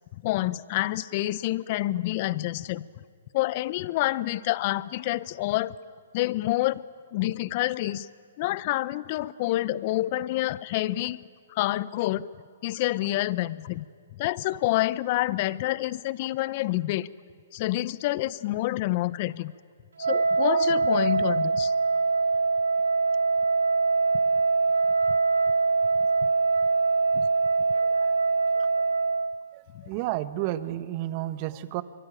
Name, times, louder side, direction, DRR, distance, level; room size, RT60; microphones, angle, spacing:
voice 1, 0.1-2.9 3.3-5.7 6.1-6.8 7.1-8.1 8.4-11.2 11.5-12.3 12.6-13.8 14.2-17.1 17.5-19.5 20.0-21.7 27.1-27.3, left 16 dB, 40° left, 19 dB, 0.8 m, -27 dB
Wind instrument woodwind instrument, 20.0-29.4, right 4 dB, 90° right, 2.6 m, -23 dB
voice 2, 29.5-31.8, right 14 dB, 35° right, 14 dB, 1.2 m, -31 dB
25.0 x 24.0 x 9.1 m, 2.2 s
hypercardioid pair, 140°, 0 cm